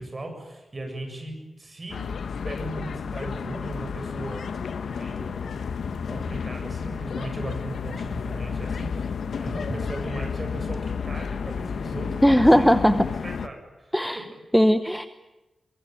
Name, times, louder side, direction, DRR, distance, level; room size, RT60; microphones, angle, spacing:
voice 1, 0.0-2.1 2.4-4.4 4.9-5.5 6.1-12.7 13.2-14.4, right 1 dB, 25° right, 4 dB, 7.6 m, -37 dB
sound 1, 1.9-13.5, left 6 dB, 85° left, 1.2 m, -31 dB
voice 2, 12.2-13.1 13.9-14.2 14.5-15.1, equal, ahead, 10 dB, 0.9 m, -18 dB
23.5 x 23.0 x 9.2 m, 1.0 s
wide cardioid pair, 155°, 0 cm